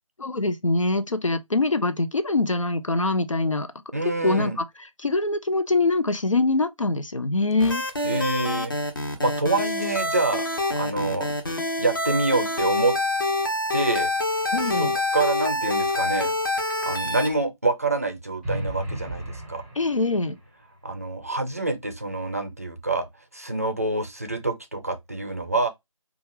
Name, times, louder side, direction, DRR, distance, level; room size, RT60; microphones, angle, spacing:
voice 1, 0.2-3.7 4.2-4.6 5.0-7.8 14.5-15.0 19.8-20.4, left 2 dB, 65° left, 0.6 m, -23 dB
voice 2, 3.9-4.6 8.0-8.7 9.2-11.3 11.8-12.9 13.7-14.1 14.7-16.3 16.8-19.6 20.8-23.1 23.3-25.7, right 2 dB, 25° right, 0.5 m, -26 dB
sound 1, 7.6-17.3, left 2 dB, 40° left, 0.9 m, -26 dB
sound 2, 18.4-20.5, right 1 dB, 5° left, 1.0 m, -34 dB
5.0 x 2.4 x 3.2 m
figure-of-eight pair, 160°, 18 cm